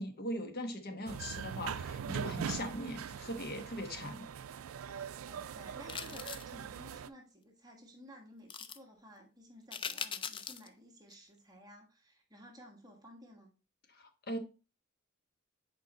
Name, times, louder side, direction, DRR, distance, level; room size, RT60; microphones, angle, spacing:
voice 1, 0.0-4.3 13.9-14.4, equal, 50° left, 1.1 m, -40 dB
sound 1, 1.1-7.1, right 7 dB, 85° right, 0.4 m, -41 dB
voice 2, 5.3-13.5, equal, 20° right, 1.3 m, -55 dB
sound 2, 5.9-6.5 8.5-8.8 9.7-10.7 11.1-11.2, left 7 dB, 25° left, 0.4 m, -41 dB
6.6 x 4.5 x 4.0 m
head